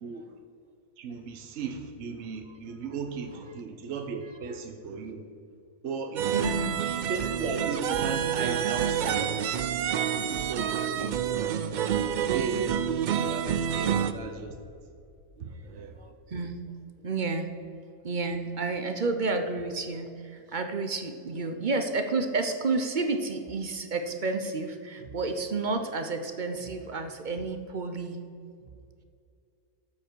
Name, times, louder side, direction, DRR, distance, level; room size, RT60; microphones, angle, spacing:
voice 1, 1.0-5.2 5.8-6.4 6.9-9.4 10.3-11.4 12.0-12.8 13.2-14.6 15.4-15.9, right 5 dB, 65° right, 5 dB, 1.1 m, -36 dB
voice 2, 4.2-4.6 6.3-6.8 14.4-14.5 15.4-16.6 17.0-17.5 18.0-28.2, right 3 dB, 45° right, 7 dB, 0.7 m, -31 dB
sound 1, 6.2-14.1, right 8 dB, 85° right, 0.4 m, -28 dB
Boom, 13.7-16.6, left 1 dB, 45° left, 1.7 m, -52 dB
13.0 x 7.4 x 4.6 m, 2.4 s
omnidirectional pair, 1.3 m